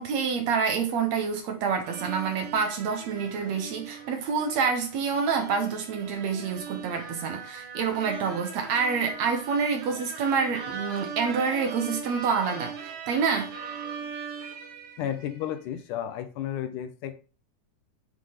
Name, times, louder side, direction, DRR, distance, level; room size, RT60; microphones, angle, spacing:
voice 1, 0.0-13.5, right 5 dB, 65° right, 2.2 m, -27 dB
sound 1, 1.8-15.5, right 6 dB, 90° right, 3.1 m, -40 dB
voice 2, 15.0-17.1, left 10 dB, 80° left, 2.4 m, -32 dB
7.9 x 3.8 x 4.9 m
omnidirectional pair, 3.7 m